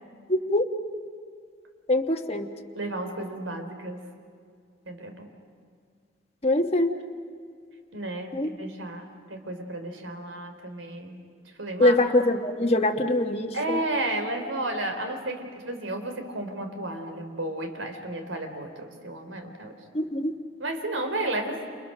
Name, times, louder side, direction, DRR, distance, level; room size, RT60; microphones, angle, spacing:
voice 1, 0.3-0.6 1.9-2.5 6.4-6.9 8.3-8.5 11.8-13.8 19.9-20.3, left 1 dB, 30° left, 3 dB, 1.2 m, -23 dB
voice 2, 2.7-4.0 4.9-5.3 7.9-11.2 11.6-12.0 13.5-19.7 20.6-21.6, right 1 dB, 80° right, 6 dB, 3.5 m, -32 dB
29.5 x 29.0 x 6.6 m, 2.1 s
head